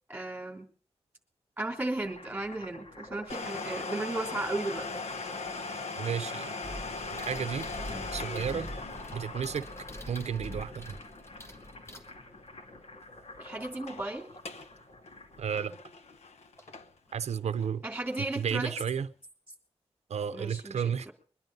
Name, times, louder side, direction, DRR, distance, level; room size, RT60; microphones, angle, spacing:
voice 1, 0.1-0.7 1.6-4.9 8.5-8.6 13.4-14.3 17.8-18.7 20.3-21.1, right 2 dB, 15° right, 3.3 m, -35 dB
sound 1, 1.7-15.6, left 1 dB, 60° left, 2.5 m, -48 dB
Domestic sounds home sounds, 3.3-12.7 13.0-13.1 13.7-14.0 14.3-14.7 15.1-17.1 17.6-17.7 18.4-18.5, left 3 dB, 80° left, 1.1 m, -40 dB
voice 2, 6.0-6.5 7.1-7.7 8.1-8.7 9.1-9.7 10.1-11.0 15.4-15.8 17.1-17.8 18.4-19.1 20.1-21.1, right 7 dB, 90° right, 0.6 m, -32 dB
sound 2, 6.6-12.6 15.1-15.2 16.6-16.8 17.2-18.1, equal, 25° left, 1.5 m, -44 dB
22.5 x 10.5 x 5.3 m
wide cardioid pair, 160°, 11 cm